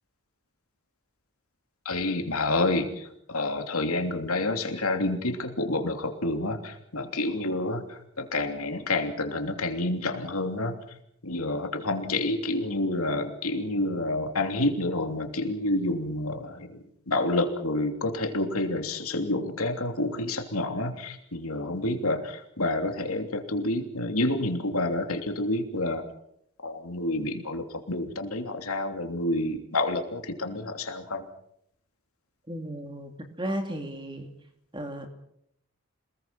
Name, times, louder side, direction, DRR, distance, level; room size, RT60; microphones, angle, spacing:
voice 1, 1.8-10.8 11.2-26.0 26.6-31.3, left 2 dB, 85° left, 5 dB, 3.1 m, -29 dB
voice 2, 32.5-34.3 34.7-35.1, right 1 dB, 20° right, 5 dB, 2.8 m, -34 dB
27.5 x 20.5 x 6.0 m, 0.73 s
head